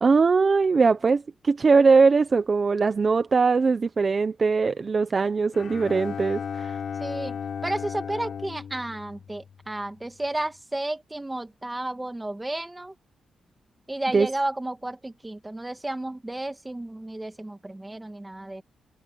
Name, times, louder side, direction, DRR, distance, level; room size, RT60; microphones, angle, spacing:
voice 1, 0.0-6.8 14.1-14.3, right 4 dB, 35° right, 0.7 m, -21 dB
Bowed string instrument, 5.5-9.9, left 7 dB, 60° left, 4.2 m, -35 dB
voice 2, 7.0-7.4 7.6-12.9 13.9-18.6, right 1 dB, 10° right, 1.6 m, -32 dB
cardioid pair, 115°, 0 cm